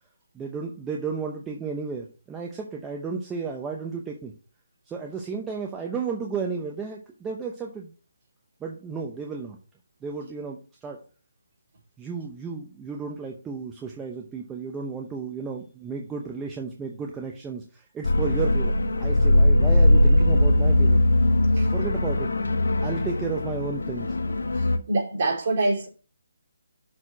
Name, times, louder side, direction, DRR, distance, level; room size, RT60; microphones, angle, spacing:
voice 1, 0.3-4.3 4.9-7.9 8.6-9.6 10.0-11.0 12.0-21.0 21.7-22.3 22.8-24.2, right 5 dB, 10° right, 0.8 m, -33 dB
sound 1, 18.0-24.8, left 1 dB, 85° left, 1.0 m, -20 dB
voice 2, 24.9-25.9, right 2 dB, 40° right, 4.0 m, -24 dB
6.4 x 4.5 x 6.0 m
hypercardioid pair, 160°, 0 cm